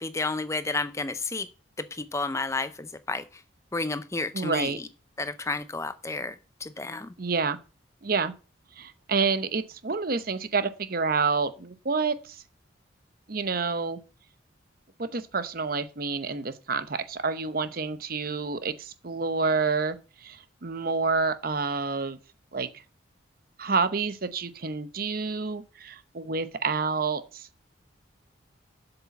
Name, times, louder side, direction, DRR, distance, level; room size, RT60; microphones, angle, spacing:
voice 1, 0.0-1.5 2.0-3.2 3.7-4.7 5.2-6.3 6.6-7.1, left 3 dB, 15° left, 0.5 m, -31 dB
voice 2, 4.3-4.8 7.2-7.6 8.0-8.3 8.8-12.4 13.3-14.0 15.0-22.2 22.5-22.7 23.6-27.5, right 4 dB, 45° right, 0.8 m, -28 dB
8.1 x 6.8 x 7.0 m
head